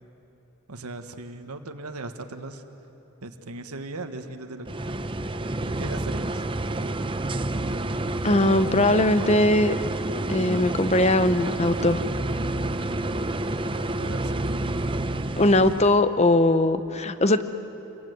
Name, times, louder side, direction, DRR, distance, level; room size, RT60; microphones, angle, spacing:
voice 1, 0.7-2.6 3.2-5.0 5.5-6.5 14.0-14.6, right 2 dB, 85° right, 6 dB, 1.4 m, -38 dB
sound 1, 4.7-16.0, right 2 dB, 25° right, 0.7 m, -29 dB
voice 2, 8.2-9.7 10.3-12.0 15.4-17.4, left 1 dB, 30° left, 11 dB, 0.8 m, -20 dB
27.0 x 22.5 x 9.4 m, 3.0 s
head